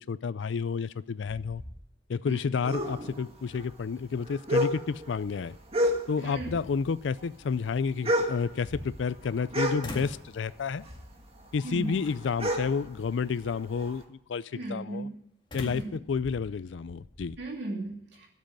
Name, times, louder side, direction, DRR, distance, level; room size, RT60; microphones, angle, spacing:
voice 1, 0.1-1.6 2.1-5.5 6.1-10.8 11.5-15.1 15.5-17.4, left 5 dB, 70° left, 17 dB, 0.4 m, -30 dB
sound 1, 0.6-1.0 1.3-2.3 2.7-2.8 5.4-5.5 6.1-7.0 8.3-9.5 9.8-10.3 10.9-11.3 12.0-12.5 15.5-17.3, left 1 dB, 25° left, 1.9 m, -43 dB
sound 2, 2.6-6.4 6.7-10.5 10.8-14.0, equal, 30° right, 1.8 m, -31 dB
voice 2, 6.2-6.6 11.6-11.9 14.5-15.1 15.6-15.9 17.4-18.3, right 2 dB, 65° right, -1 dB, 2.7 m, -36 dB
13.0 x 7.6 x 9.3 m, 0.74 s
head